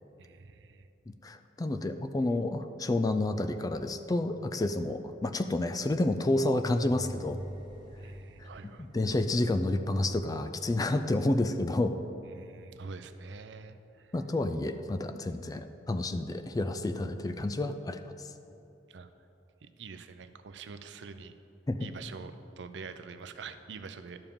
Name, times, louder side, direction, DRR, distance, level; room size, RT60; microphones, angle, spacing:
voice 1, 0.2-0.9 8.0-8.9 12.3-14.1 18.9-19.1 19.6-21.3 21.8-24.2, right 5 dB, 65° right, 10 dB, 0.5 m, -45 dB
voice 2, 1.2-7.4 8.4-8.5 8.9-12.0 14.1-18.3 21.7-21.9, left 2 dB, 20° left, 9 dB, 0.3 m, -30 dB
sound 1, 6.6-10.5, equal, 25° right, 1.5 m, -44 dB
12.0 x 6.9 x 3.7 m, 2.9 s
head